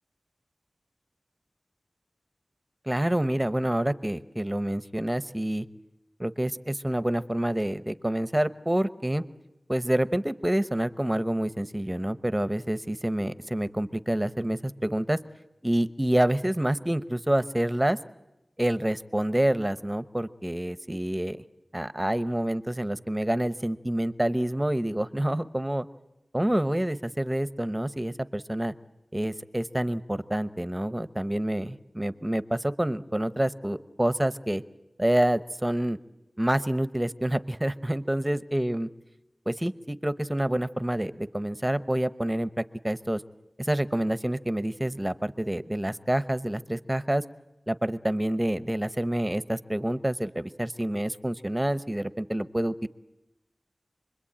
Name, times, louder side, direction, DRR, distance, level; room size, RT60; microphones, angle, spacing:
voice 1, 2.9-5.7 6.2-9.2 9.7-15.2 15.6-18.0 18.6-21.4 21.7-25.9 26.3-28.7 29.1-34.6 35.0-36.0 36.4-38.9 39.5-43.2 43.6-47.2 47.7-52.9, right 1 dB, 15° right, 13 dB, 0.9 m, -27 dB
28.0 x 22.0 x 8.8 m, 0.93 s
wide cardioid pair, 70°, 0 cm